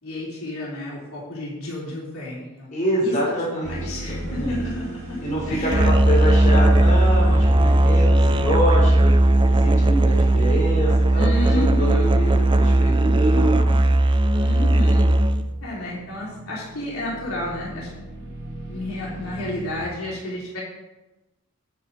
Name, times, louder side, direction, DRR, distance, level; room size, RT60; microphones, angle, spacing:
voice 1, 0.0-2.7 3.0-3.4 3.7-5.2 5.5-5.9 11.2-12.5 14.3-15.1 15.6-17.9 18.2-18.3 18.7-20.6, left 1 dB, 80° left, -6 dB, 3.5 m, -31 dB
voice 2, 2.7-4.6 5.2-9.1 9.5-13.9, equal, 35° left, -4 dB, 4.2 m, -26 dB
sound 1, 3.6-11.0 11.6-11.8 14.8-19.8, right 1 dB, 65° right, 1.9 m, -35 dB
Musical instrument, 5.7-15.5, right 1 dB, 25° right, 0.4 m, -17 dB
9.4 x 8.9 x 4.2 m, 1.0 s
head